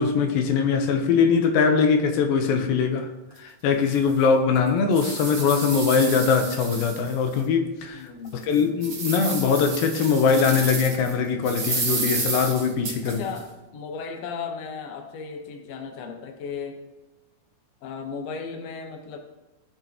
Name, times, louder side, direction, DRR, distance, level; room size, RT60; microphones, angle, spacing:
voice 1, 0.0-3.1 3.4-13.2, left 5 dB, 85° left, 2.6 m, -22 dB
sound 1, 3.3-3.4 3.9-4.0 4.5-7.4 7.8-7.9 8.4-11.1 11.4-13.4, right 3 dB, 40° right, 1.4 m, -31 dB
voice 2, 7.9-8.5 13.1-16.8 17.8-19.2, left 5 dB, 60° left, 1.8 m, -35 dB
17.0 x 6.8 x 2.9 m
omnidirectional pair, 4.1 m